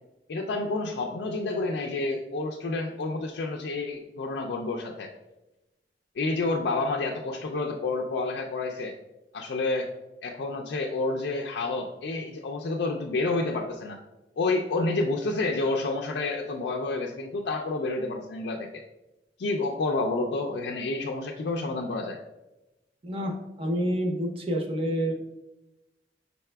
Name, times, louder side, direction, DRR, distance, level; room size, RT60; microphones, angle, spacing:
voice 1, 0.3-5.1 6.2-8.9 9.3-9.9 10.2-14.0 14.4-18.8 19.4-22.2, left 3 dB, 65° left, 1 dB, 0.4 m, -29 dB
voice 2, 23.6-25.1, equal, 35° right, 2 dB, 0.6 m, -28 dB
5.6 x 4.0 x 2.2 m, 0.98 s
head